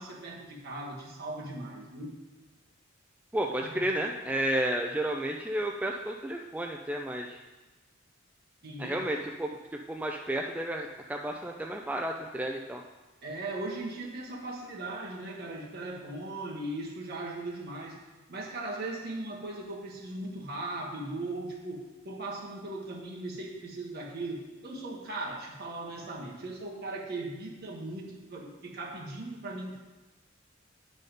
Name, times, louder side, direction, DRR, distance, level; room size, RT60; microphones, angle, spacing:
voice 1, 0.0-2.1 3.6-3.8 8.6-9.0 13.2-18.0 18.3-29.8, right 2 dB, 50° right, -2 dB, 1.5 m, -38 dB
voice 2, 3.3-7.4 8.8-12.8, right 1 dB, 5° right, 1 dB, 0.3 m, -32 dB
9.0 x 4.0 x 5.2 m, 1.2 s
head